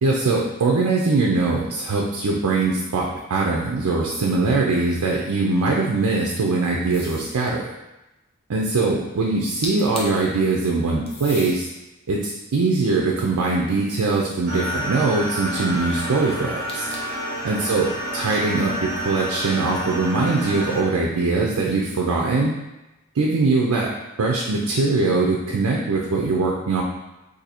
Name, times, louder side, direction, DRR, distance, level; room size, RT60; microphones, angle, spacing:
voice 1, 0.0-7.7 8.5-11.7 12.1-16.9 17.4-22.6 23.1-23.9 24.2-26.8, right 3 dB, 85° right, -2 dB, 0.5 m, -22 dB
sound 1, 6.9-7.4 9.4-9.5 9.6-10.3 11.1-11.6 12.3-13.7 16.7-17.2, left 2 dB, 25° left, 0.5 m, -36 dB
sound 2, 14.5-20.8, right 1 dB, 45° right, 0.8 m, -29 dB
2.7 x 2.7 x 4.1 m, 1.0 s
head